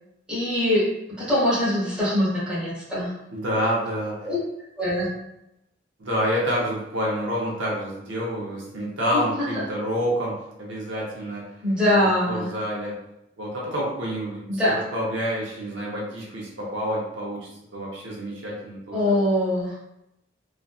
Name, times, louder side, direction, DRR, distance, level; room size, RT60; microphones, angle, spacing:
voice 1, 0.3-0.9 1.2-3.1 4.2-4.4 4.8-5.1 9.1-9.2 11.6-12.4 14.5-14.8 18.9-19.7, left 1 dB, 5° right, -10 dB, 1.1 m, -22 dB
voice 2, 3.3-4.3 6.0-10.3 10.6-11.4 11.9-12.9 13.4-19.1, equal, 75° right, -4 dB, 0.7 m, -28 dB
2.4 x 2.4 x 2.3 m, 0.85 s
head